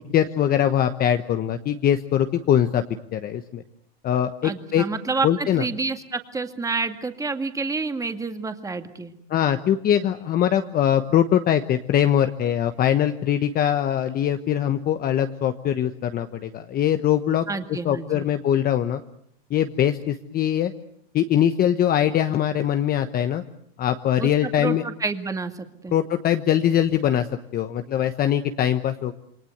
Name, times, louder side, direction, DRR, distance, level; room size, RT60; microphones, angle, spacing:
voice 1, 0.1-2.8 3.1-3.6 4.0-4.8 5.2-5.6 9.3-19.0 19.5-20.7 21.1-23.4 23.8-24.8 25.9-27.3 27.5-29.1, left 10 dB, 30° left, 8 dB, 1.1 m, -22 dB
voice 2, 4.4-9.1 17.5-18.3 24.2-25.9, right 4 dB, 10° right, 7 dB, 2.1 m, -29 dB
28.0 x 23.0 x 8.0 m, 0.69 s
supercardioid pair, 135°, 31 cm